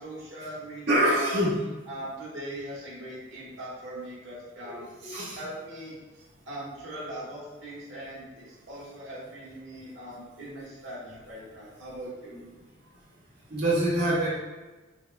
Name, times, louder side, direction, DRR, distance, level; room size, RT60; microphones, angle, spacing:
voice 1, 0.0-1.4 1.9-6.0 6.5-12.3, right 1 dB, 85° right, -6 dB, 1.3 m, -40 dB
voice 2, 0.9-1.6 4.6-5.5 12.3-12.4 13.5-14.3, right 1 dB, 55° right, -8 dB, 1.2 m, -25 dB
6.7 x 2.3 x 2.3 m, 1.2 s
head